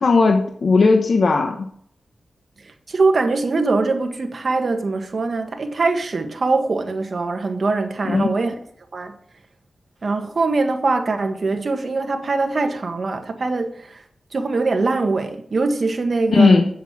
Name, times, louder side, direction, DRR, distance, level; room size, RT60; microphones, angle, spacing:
voice 1, 0.0-1.7 8.1-8.3 16.3-16.7, left 4 dB, 60° left, 1.0 m, -16 dB
voice 2, 2.6-8.5 8.9-9.2 10.0-14.0 14.3-16.6, right 3 dB, 50° right, 1.5 m, -22 dB
8.2 x 7.5 x 6.0 m
wide cardioid pair, 110°, 0 cm